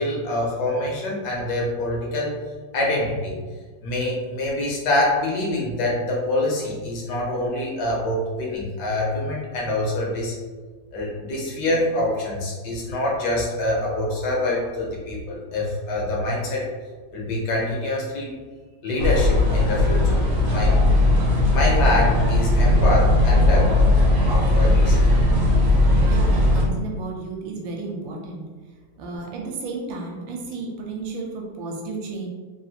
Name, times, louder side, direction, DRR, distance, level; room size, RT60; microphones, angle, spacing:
voice 1, 0.0-2.3 2.7-3.3 3.8-10.3 10.9-16.6 17.1-18.3 18.8-20.2 20.5-20.7 21.5-23.7 24.5-25.1, left 1 dB, 70° left, -3 dB, 1.2 m, -25 dB
sound 1, 19.0-26.6, left 1 dB, 50° right, 0.8 m, -18 dB
voice 2, 26.0-28.4 29.0-32.3, right 3 dB, 80° right, -1 dB, 1.3 m, -33 dB
3.4 x 2.4 x 2.7 m, 1.4 s
omnidirectional pair, 2.1 m